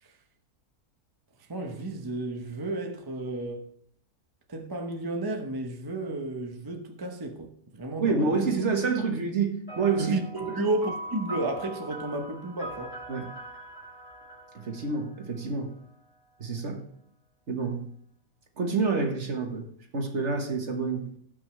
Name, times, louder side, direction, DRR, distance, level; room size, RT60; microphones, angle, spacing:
voice 1, 1.5-3.7 4.5-8.5 10.0-12.9, right 2 dB, 20° right, 0.8 m, -32 dB
voice 2, 8.0-10.1 10.5-10.7 13.1-13.3 14.5-15.8 16.4-16.8 17.5-17.9 18.6-21.2, right 4 dB, 50° right, 1.7 m, -28 dB
sound 1, 9.7-15.4, right 1 dB, 40° left, 5.4 m, -41 dB
18.0 x 6.0 x 3.3 m
omnidirectional pair, 1.6 m